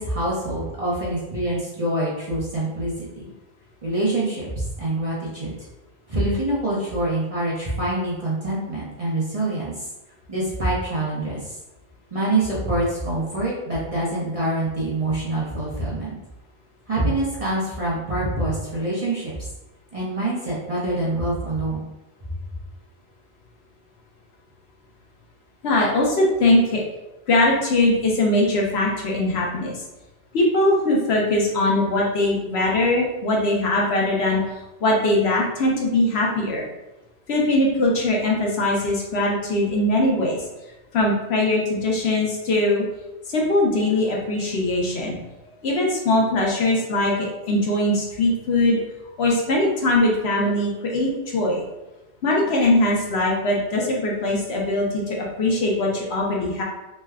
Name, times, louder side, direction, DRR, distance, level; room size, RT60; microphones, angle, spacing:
voice 1, 0.0-3.2 3.8-4.5 4.8-5.5 6.1-9.9 10.3-11.6 12.1-16.1 16.9-19.3 19.9-21.8, right 1 dB, 35° right, -6 dB, 0.6 m, -25 dB
voice 2, 25.6-26.8 27.3-29.8 30.3-34.4 34.8-36.6 37.3-40.4 40.9-42.8 43.3-45.2 45.6-48.8 49.2-51.6 52.2-56.6, left 1 dB, 65° left, -2 dB, 0.9 m, -21 dB
3.2 x 2.1 x 3.4 m, 0.99 s
omnidirectional pair, 1.2 m